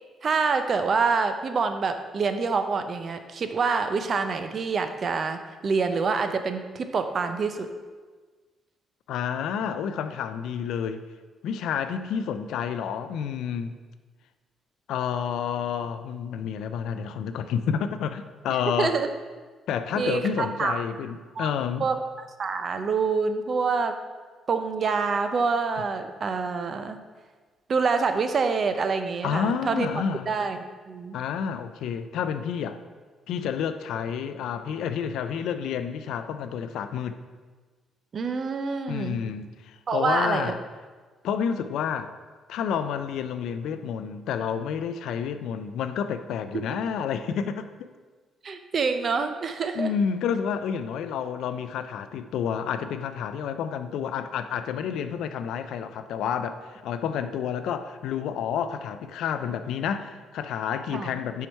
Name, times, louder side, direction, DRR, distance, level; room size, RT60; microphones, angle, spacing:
voice 1, 0.2-7.7 18.7-19.1 20.0-20.8 21.4-21.5 21.8-24.0 24.5-27.0 27.7-29.9 30.3-31.2 38.1-39.2 39.9-40.5 46.7-46.8 48.4-49.9 60.9-61.2, right 4 dB, 50° right, 8 dB, 0.5 m, -26 dB
voice 2, 9.1-11.0 11.4-13.7 14.9-19.0 19.7-21.9 29.2-30.3 31.1-32.8 33.3-37.2 38.9-40.6 41.2-42.1 42.5-47.9 49.7-61.5, left 7 dB, 80° left, 10 dB, 0.3 m, -29 dB
4.6 x 4.4 x 5.4 m, 1.4 s
cardioid pair, 90°, 0 cm